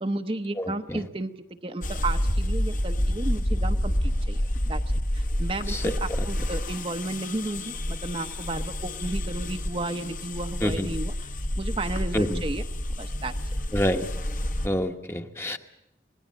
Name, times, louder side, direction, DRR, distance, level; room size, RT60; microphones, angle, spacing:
voice 1, 0.0-12.7 13.0-13.4, right 2 dB, 30° right, 6 dB, 0.7 m, -33 dB
voice 2, 0.6-1.0 5.7-5.9 10.6-10.9 12.1-12.4 13.7-14.1 14.6-15.6, equal, 15° left, 6 dB, 1.0 m, -27 dB
sound 1, 1.8-14.7, left 1 dB, 50° left, 1.3 m, -29 dB
26.5 x 19.0 x 7.5 m, 0.87 s
head